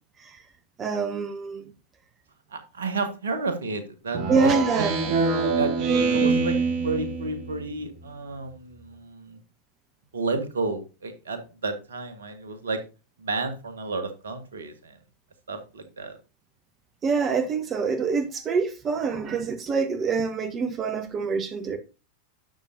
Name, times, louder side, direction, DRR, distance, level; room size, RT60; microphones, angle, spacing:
voice 1, 0.8-1.7 4.3-5.2 17.0-21.8, right 5 dB, 25° right, 0.9 m, -26 dB
voice 2, 2.5-4.8 5.5-5.7 6.1-6.6 6.8-9.4 10.1-12.8 13.2-15.0 15.5-16.2, right 3 dB, 65° right, 1.6 m, -31 dB
Speech synthesizer, 4.1-7.7, right 4 dB, 45° right, 1.6 m, -24 dB
11.5 x 7.1 x 2.7 m
figure-of-eight pair, 90°, 0 cm